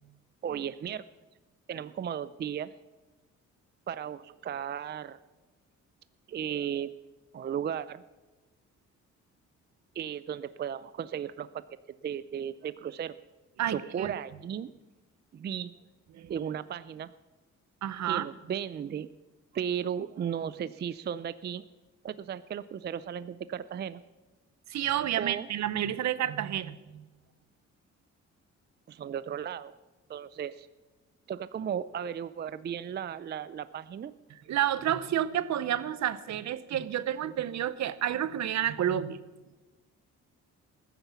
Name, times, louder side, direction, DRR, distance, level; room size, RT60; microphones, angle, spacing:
voice 1, 0.4-1.0 1.7-2.7 3.9-5.2 6.3-6.9 7.3-8.0 10.0-11.6 11.9-13.1 13.7-14.7 15.3-15.7 16.3-17.1 18.0-19.1 19.5-21.6 22.0-24.0 25.2-25.5 28.9-29.7 30.1-30.7 31.3-34.1, right 8 dB, 35° right, 15 dB, 0.4 m, -35 dB
voice 2, 13.6-14.1 16.1-16.3 17.8-18.3 24.7-27.0 34.5-39.2, right 11 dB, 65° right, 15 dB, 0.9 m, -30 dB
15.0 x 9.9 x 7.1 m, 1.2 s
cardioid pair, 90°, 30 cm